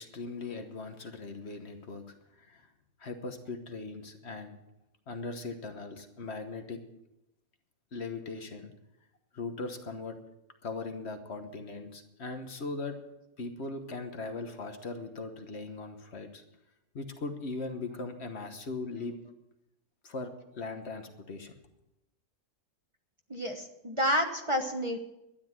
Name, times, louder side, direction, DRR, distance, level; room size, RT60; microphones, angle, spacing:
voice 1, 0.0-2.7 3.0-4.6 5.1-6.8 7.9-8.7 9.3-10.2 10.6-13.0 13.4-16.4 16.9-19.1 20.0-21.5, left 3 dB, 55° left, 6 dB, 1.4 m, -39 dB
voice 2, 23.3-25.0, equal, 25° right, 3 dB, 1.1 m, -29 dB
12.5 x 10.5 x 7.4 m, 0.89 s
omnidirectional pair, 1.4 m